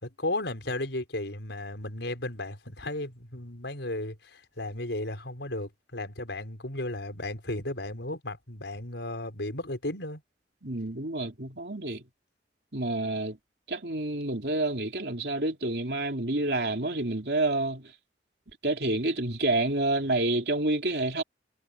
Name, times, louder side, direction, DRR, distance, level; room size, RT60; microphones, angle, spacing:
voice 1, 0.0-10.2, left 1 dB, 90° left, 5.2 m, -34 dB
voice 2, 10.6-12.0 12.7-13.4 13.7-17.8 18.6-21.2, right 2 dB, 70° right, 3.1 m, -28 dB
head